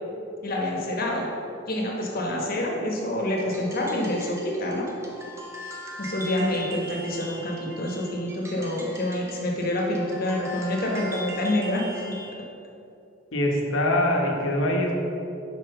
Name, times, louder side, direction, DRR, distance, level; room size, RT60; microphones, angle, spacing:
voice 1, 0.4-1.3 1.7-4.9 6.0-12.1, left 1 dB, 45° left, -1 dB, 1.1 m, -27 dB
sound 1, 3.4-12.4, equal, 15° right, 0.6 m, -40 dB
voice 2, 13.3-14.9, left 1 dB, 65° left, 0 dB, 1.0 m, -23 dB
5.7 x 4.6 x 5.6 m, 2.7 s
head